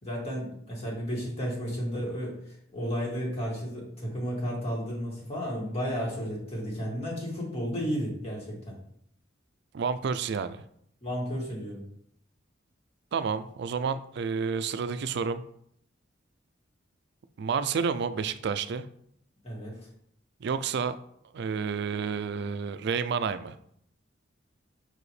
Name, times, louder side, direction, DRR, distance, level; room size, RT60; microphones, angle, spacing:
voice 1, 0.0-8.7 11.0-11.8 19.4-19.8, equal, 30° left, -5 dB, 2.2 m, -33 dB
voice 2, 9.7-10.6 13.1-15.4 17.4-18.9 20.4-21.0 21.3-23.6, right 5 dB, 60° right, 13 dB, 0.4 m, -30 dB
6.1 x 4.9 x 3.2 m, 0.69 s
head